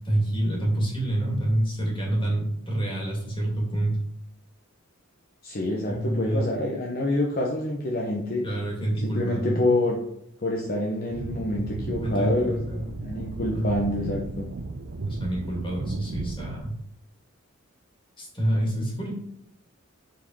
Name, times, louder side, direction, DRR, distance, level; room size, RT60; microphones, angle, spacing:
voice 1, 0.0-4.0 5.9-6.4 8.4-9.7 12.0-13.0 13.5-13.6 15.1-16.7 18.2-19.1, right 1 dB, 25° left, -2 dB, 2.5 m, -27 dB
voice 2, 5.4-8.4 9.0-10.0 10.4-12.6 13.0-14.5, left 1 dB, 45° left, -1 dB, 1.0 m, -27 dB
sound 1, 11.1-16.6, right 3 dB, 65° right, 0.6 m, -34 dB
7.5 x 4.6 x 5.5 m, 0.75 s
head